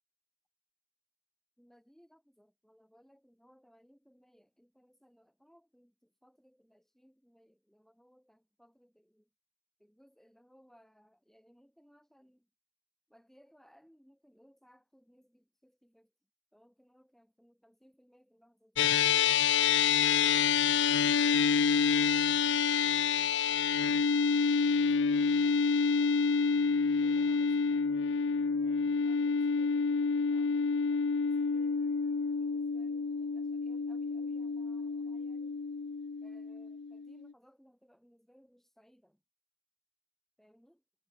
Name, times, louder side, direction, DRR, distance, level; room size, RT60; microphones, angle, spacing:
voice 1, 1.6-9.3 9.8-12.5 13.1-16.1 16.5-18.8 21.7-26.6 27.0-28.1 28.6-31.9 32.4-35.7 36.2-39.2 40.4-40.8, equal, ahead, 7.8 m, -64 dB
sound 1, 18.8-37.3, left 6 dB, 70° left, 0.6 m, -28 dB
head